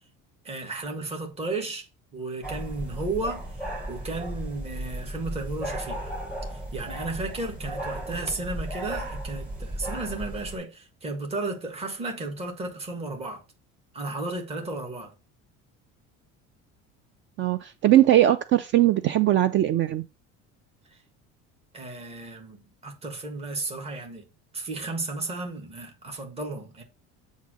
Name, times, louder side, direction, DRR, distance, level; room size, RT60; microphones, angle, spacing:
voice 1, 0.4-6.1 6.5-13.4 13.9-15.1 20.9-21.0 21.7-24.3 24.5-26.8, right 2 dB, 20° right, 1.5 m, -34 dB
sound 1, 2.4-10.6, right 1 dB, 5° right, 3.6 m, -35 dB
voice 2, 17.4-20.0, right 13 dB, 40° right, 0.4 m, -20 dB
8.3 x 2.8 x 6.1 m
cardioid pair, 150°, 30 cm